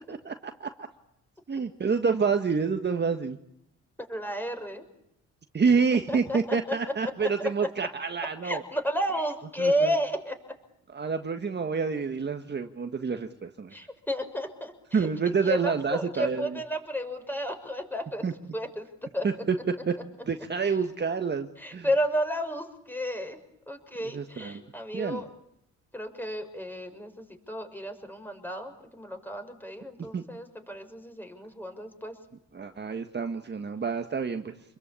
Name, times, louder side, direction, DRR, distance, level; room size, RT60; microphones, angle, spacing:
voice 1, 0.1-0.7 1.5-3.4 5.5-8.6 9.6-9.9 10.9-13.8 14.9-16.6 18.2-18.3 19.2-19.6 19.9-20.0 20.3-21.9 24.1-24.6 24.9-25.2 30.1-30.2 32.5-34.5, right 5 dB, 35° right, 6 dB, 1.8 m, -28 dB
voice 2, 4.1-4.8 6.1-6.8 7.2-7.7 8.4-10.5 13.7-15.1 15.4-18.2 18.5-19.3 20.6-20.7 21.6-23.4 23.7-25.3 25.9-32.1, equal, 5° left, 6 dB, 6.0 m, -32 dB
27.5 x 22.0 x 8.7 m, 0.77 s
cardioid pair, 90°, 30 cm